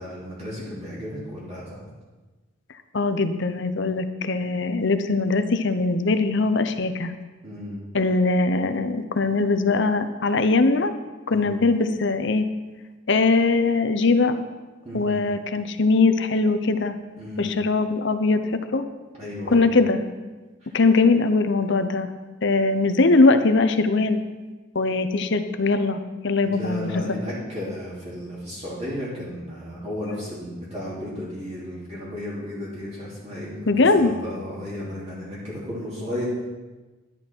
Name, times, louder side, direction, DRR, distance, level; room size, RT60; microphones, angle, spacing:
voice 1, 0.0-1.9 7.4-7.8 11.3-11.6 14.8-15.2 17.2-17.5 19.2-19.7 26.4-33.7 34.0-36.3, left 1 dB, 30° right, -7 dB, 3.1 m, -34 dB
voice 2, 2.9-7.1 7.9-10.9 11.3-12.5 13.1-14.4 14.9-16.9 17.4-18.8 19.5-20.0 20.7-22.1 22.4-24.2 24.7-26.0 26.2-27.0 33.7-34.1, left 3 dB, 60° left, 9 dB, 0.8 m, -21 dB
12.0 x 10.5 x 4.6 m, 1.2 s
head